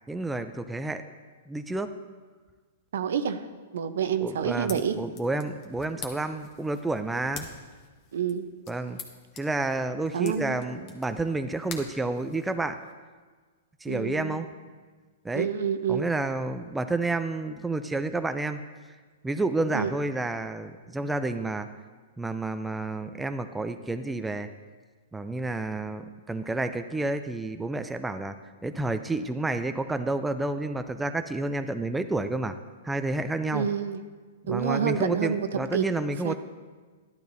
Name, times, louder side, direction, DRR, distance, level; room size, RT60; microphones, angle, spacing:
voice 1, 0.1-1.0 1.5-1.9 4.2-7.5 8.7-9.0 9.4-12.8 13.8-14.5 15.2-15.5 15.9-18.6 19.2-21.7 22.2-24.5 25.1-28.4 28.6-32.5 32.8-33.7 34.5-36.3, right 2 dB, 5° right, 8 dB, 0.4 m, -30 dB
voice 2, 2.9-3.4 3.7-4.9 8.1-8.5 10.1-10.5 13.9-14.4 15.3-16.0 19.7-19.9 33.5-34.0 34.5-35.8 36.2-36.3, right 7 dB, 75° right, 10 dB, 0.7 m, -28 dB
sound 1, 4.3-12.9, left 6 dB, 40° left, 1.3 m, -46 dB
12.0 x 11.5 x 2.7 m, 1.4 s
hypercardioid pair, 140°, 0 cm